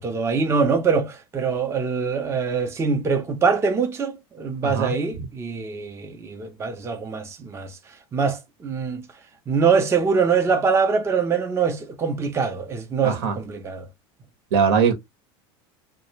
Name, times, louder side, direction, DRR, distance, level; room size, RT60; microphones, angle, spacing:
voice 1, 0.0-7.8 8.1-9.0 9.5-13.9, right 5 dB, 20° right, 0.6 m, -23 dB
voice 2, 4.6-4.9 13.0-13.4 14.5-14.9, right 6 dB, 75° right, 1.0 m, -20 dB
2.3 x 2.0 x 3.1 m
supercardioid pair, 110°, 14 cm